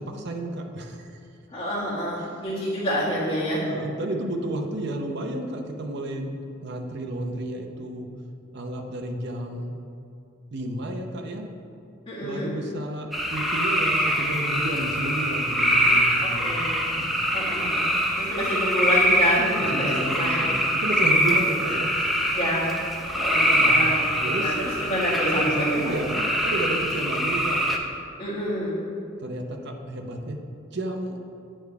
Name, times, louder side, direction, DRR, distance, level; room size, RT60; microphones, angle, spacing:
voice 1, 0.1-1.2 2.2-2.5 3.6-8.1 8.5-9.7 10.5-11.5 12.2-16.6 17.0-17.2 19.7-20.4 20.7-22.1 23.5-23.9 24.2-24.6 25.3-27.6 29.2-30.4 30.7-31.2, right 1 dB, 60° right, 3 dB, 0.7 m, -32 dB
voice 2, 1.5-3.6 12.1-12.5 16.2-16.7 17.3-17.9 18.2-20.4 22.3-22.7 23.1-24.0 24.4-25.9 28.2-28.7, equal, 30° left, -12 dB, 1.5 m, -27 dB
sound 1, 13.1-27.8, equal, ahead, 0.5 m, -24 dB
8.8 x 3.4 x 4.7 m, 2.6 s
head